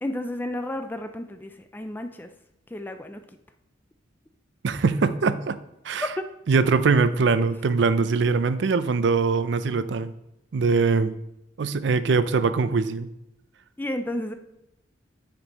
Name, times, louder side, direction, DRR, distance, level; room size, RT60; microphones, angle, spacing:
voice 1, 0.0-2.3 2.7-3.2 6.2-6.3 13.8-14.3, left 1 dB, 10° left, 7 dB, 0.3 m, -32 dB
voice 2, 4.6-5.6 5.8-6.1 6.5-10.1 10.5-11.2 11.6-13.1, right 4 dB, 65° right, 13 dB, 0.4 m, -22 dB
10.5 x 5.2 x 2.9 m, 0.90 s
head